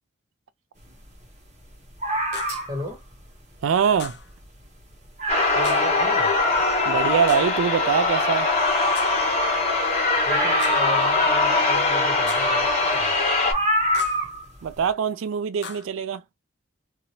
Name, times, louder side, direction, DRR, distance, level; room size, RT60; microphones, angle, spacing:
sound 1, 2.0-2.9 4.0-4.1 4.4-4.5 4.9-5.0 5.2-6.0 6.5-6.6 10.3-11.5 12.7-12.8 13.5-14.5 14.8-14.9, right 1 dB, 35° right, 1.1 m, -26 dB
sound 2, 2.3-2.7 4.0-4.3 5.6-6.0 7.3-7.7 8.9-9.3 10.6-11.0 12.3-12.6 13.9-14.3 15.6-15.9, left 5 dB, 60° left, 0.7 m, -39 dB
voice 1, 2.7-3.0 5.5-6.3 10.2-13.1, left 1 dB, 20° right, 1.4 m, -35 dB
voice 2, 3.6-4.2 6.9-8.5 14.6-16.2, right 7 dB, 85° right, 0.4 m, -23 dB
sound 3, 5.3-13.5, left 3 dB, 30° left, 1.2 m, -21 dB
2.9 x 2.6 x 2.8 m
head